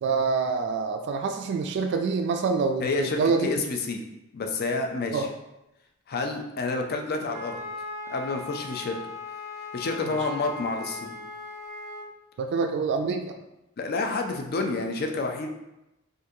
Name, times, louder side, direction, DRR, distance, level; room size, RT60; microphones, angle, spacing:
voice 1, 0.0-3.5 5.1-5.3 10.1-10.2 12.4-13.3, right 4 dB, 60° right, 5 dB, 0.3 m, -26 dB
voice 2, 2.8-4.0 4.3-5.3 6.1-7.6 8.1-9.0 9.7-11.1 13.8-15.5, left 3 dB, 50° left, 4 dB, 0.4 m, -29 dB
Wind instrument woodwind instrument, 7.3-12.1, left 3 dB, 15° right, 0.7 m, -38 dB
3.7 x 2.6 x 2.6 m, 0.92 s
head